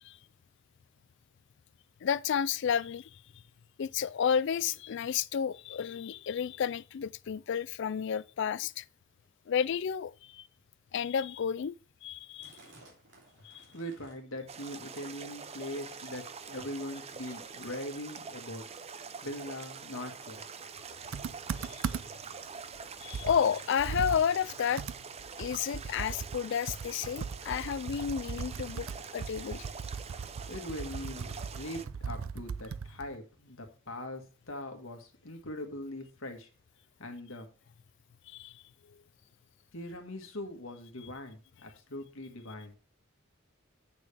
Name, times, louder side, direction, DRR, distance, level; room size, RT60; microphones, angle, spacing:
voice 1, 2.0-3.2 3.8-8.8 9.5-10.4 10.9-11.8 12.0-12.6 13.4-13.6 21.6-21.9 23.0-24.8 25.4-28.9 29.1-29.7 38.3-38.6, left 7 dB, 60° left, 0.3 m, -31 dB
sound 1, 12.4-14.4 14.7-15.1 15.4-16.3 16.8-17.1 17.9-18.0 18.1-18.3 18.9-19.0 19.7-19.8, right 2 dB, 60° right, 3.2 m, -58 dB
voice 2, 13.7-18.6 19.2-20.4 30.5-36.5 37.0-37.5 39.7-42.8, left 1 dB, 75° left, 1.7 m, -41 dB
sound 2, 14.5-31.9, right 5 dB, 30° right, 0.5 m, -45 dB
Computer keyboard, 21.1-22.3 22.7-22.8 23.1-26.4 26.7-33.2, right 5 dB, 80° right, 0.4 m, -39 dB
8.8 x 6.1 x 3.4 m
head